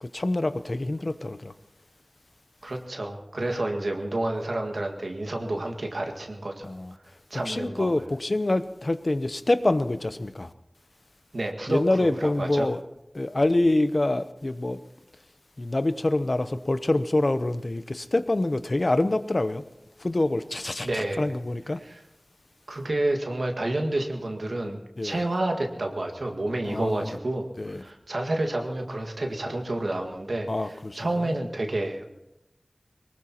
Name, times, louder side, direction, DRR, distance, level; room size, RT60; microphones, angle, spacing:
voice 1, 0.0-1.5 6.6-6.9 7.4-10.5 11.7-12.8 13.1-14.8 15.6-19.6 20.0-21.8 25.0-25.2 26.7-27.1 27.6-27.8 30.5-31.1, left 2 dB, 55° left, 0.8 m, -26 dB
voice 2, 2.6-6.7 7.3-8.0 11.3-12.7 20.8-21.3 21.8-22.0 22.7-32.1, right 1 dB, 90° right, 1.8 m, -29 dB
23.0 x 20.0 x 3.0 m
wide cardioid pair, 50°, 0 cm